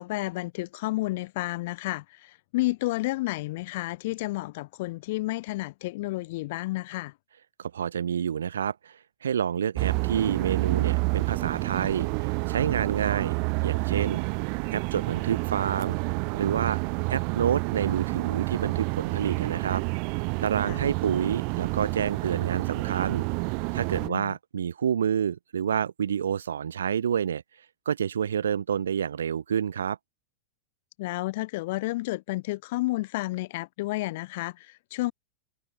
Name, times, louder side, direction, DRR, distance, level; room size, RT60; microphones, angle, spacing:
voice 1, 0.0-7.1 20.7-20.9 23.9-24.3 31.0-35.1, left 20 dB, 50° left, 4.4 m, -31 dB
voice 2, 7.6-13.3 13.6-14.2 14.7-16.0 16.3-16.8 17.1-19.8 20.1-23.3 23.7-27.4 27.8-30.0, right 8 dB, 65° right, 2.8 m, -28 dB
sound 1, 9.7-24.1, right 40 dB or more, 45° right, 4.5 m, -29 dB
figure-of-eight pair, 90°, 0 cm